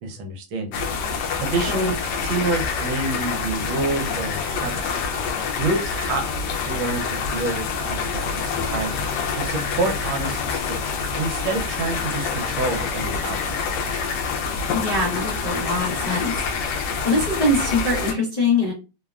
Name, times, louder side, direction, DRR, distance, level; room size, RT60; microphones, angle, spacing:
voice 1, 0.0-0.7 1.4-1.9 2.2-5.0 5.6-6.2 6.6-9.1 9.3-13.6, right 3 dB, 75° right, 3 dB, 1.4 m, -28 dB
sound 1, 0.7-18.1, left 5 dB, 75° left, 1.0 m, -26 dB
voice 2, 14.7-16.4 17.0-18.7, left 2 dB, 45° left, -7 dB, 0.5 m, -23 dB
3.4 x 2.1 x 2.3 m, 0.30 s
omnidirectional pair, 2.3 m